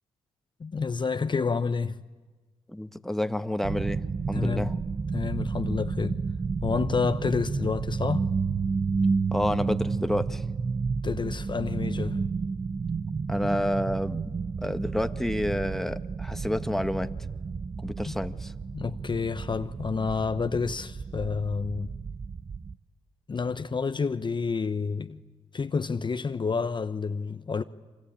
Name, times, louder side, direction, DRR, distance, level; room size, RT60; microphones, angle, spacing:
voice 1, 0.6-2.0 4.3-4.7 5.1-6.2 6.6-8.3 11.0-12.2 18.1-18.2 18.7-21.9 23.3-25.2 25.5-27.6, left 5 dB, 35° left, 0.9 m, -29 dB
voice 2, 2.7-4.0 4.3-4.7 9.3-10.4 13.3-17.1 17.8-18.5, left 1 dB, 5° left, 1.5 m, -29 dB
sound 1, 3.6-22.7, right 4 dB, 35° right, 0.8 m, -31 dB
27.0 x 24.5 x 8.7 m
supercardioid pair, 50°, 13 cm